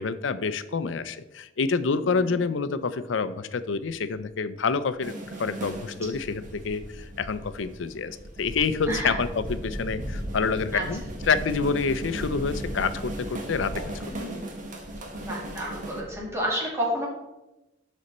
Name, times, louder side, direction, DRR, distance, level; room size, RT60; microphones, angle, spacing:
voice 1, 0.0-5.1 5.4-11.0 11.3-14.0, left 5 dB, 80° left, 13 dB, 0.5 m, -27 dB
voice 2, 2.0-2.4 8.9-9.2 10.7-10.8 14.1-14.5 15.3-17.1, equal, 15° right, -4 dB, 2.2 m, -30 dB
sound 1, 5.0-16.0, right 1 dB, 45° right, 1.3 m, -39 dB
sound 2, 5.4-16.4, equal, 75° right, 2.1 m, -39 dB
11.5 x 4.3 x 4.2 m, 0.96 s
head